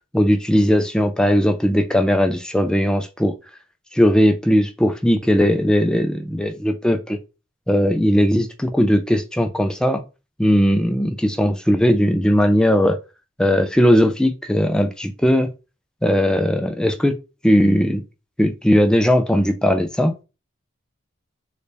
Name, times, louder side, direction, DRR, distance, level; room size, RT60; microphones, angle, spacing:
voice 1, 0.1-3.3 3.9-7.2 7.7-10.0 10.4-13.0 13.4-15.5 16.0-17.1 17.4-18.0 18.4-20.1, equal, 5° left, 0.3 m, -18 dB
3.2 x 2.6 x 3.2 m
head